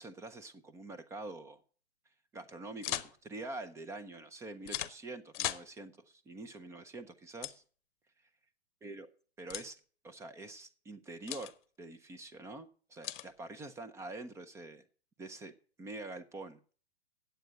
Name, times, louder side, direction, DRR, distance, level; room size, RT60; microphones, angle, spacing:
voice 1, 0.0-1.6 2.3-7.6 8.8-9.1 9.4-14.8 15.2-15.5 15.8-16.6, right 2 dB, 10° right, 11 dB, 0.6 m, -46 dB
sound 1, 2.8-3.1 4.7-4.9 5.3-5.7 7.4-7.6 9.5-9.7 11.3-11.5 13.0-13.3, left 12 dB, 45° left, 0.8 m, -37 dB
9.0 x 8.0 x 6.3 m, 0.42 s
hypercardioid pair, 125°, 33 cm